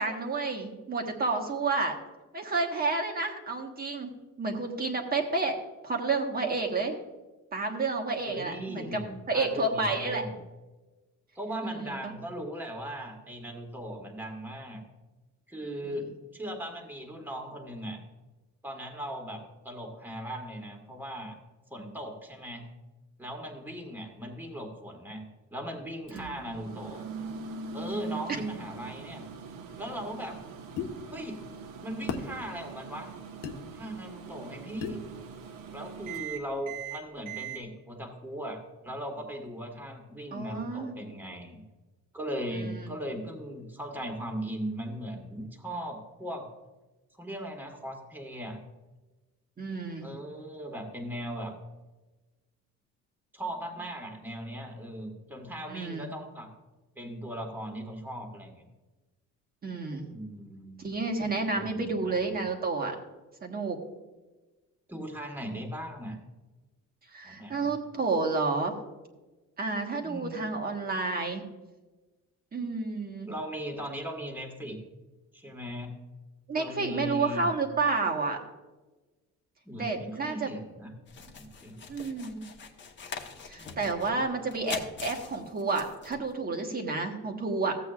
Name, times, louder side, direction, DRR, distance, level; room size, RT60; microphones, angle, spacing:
voice 1, 0.0-2.0 2.3-4.1 4.4-5.6 5.8-7.0 7.5-9.0 9.3-10.2 11.6-12.1 15.8-16.0 26.1-26.3 40.3-41.0 42.5-42.9 49.6-50.1 55.7-56.1 59.6-60.1 60.8-63.0 63.4-63.8 67.1-68.7 69.6-71.4 72.5-73.3 76.5-78.4 79.8-80.5 81.9-82.4 83.5-87.7, right 3 dB, 30° right, 2 dB, 1.4 m, -30 dB
voice 2, 8.3-10.3 11.3-14.8 15.5-16.1 16.3-18.0 18.6-21.4 21.7-22.7 23.2-25.2 25.5-27.0 27.7-29.3 29.8-30.4 31.1-31.4 31.8-33.1 33.7-35.0 35.7-41.6 42.1-46.5 47.2-48.6 50.0-51.5 53.3-56.5 57.0-58.7 60.1-60.9 61.5-62.3 64.9-66.2 67.2-67.7 70.0-70.5 73.3-74.8 75.3-75.9 76.5-77.5 79.6-80.9 81.4-81.8 83.6-84.2, equal, 5° right, 2 dB, 1.6 m, -38 dB
Microwave oven, 26.1-37.6, right 6 dB, 80° right, 1.2 m, -42 dB
sound 1, 30.8-30.9 32.1-32.3 33.4-33.6 34.8-35.0, left 7 dB, 85° left, 1.1 m, -33 dB
sound 2, 81.1-86.3, left 5 dB, 35° left, 1.1 m, -43 dB
15.0 x 8.2 x 2.4 m, 1.2 s
cardioid pair, 135°, 31 cm